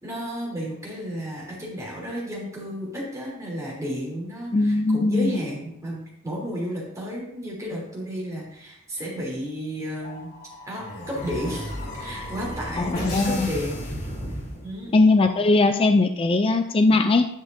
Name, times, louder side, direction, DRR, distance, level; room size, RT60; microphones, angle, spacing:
voice 1, 0.0-10.3 10.6-13.8 14.6-14.9, equal, 15° right, -5 dB, 3.2 m, -32 dB
voice 2, 4.5-5.4 12.8-13.5 14.9-17.3, left 3 dB, 25° left, 7 dB, 0.4 m, -20 dB
sound 1, 10.0-15.0, equal, 55° left, 3.1 m, -34 dB
11.0 x 6.5 x 2.7 m, 0.78 s
head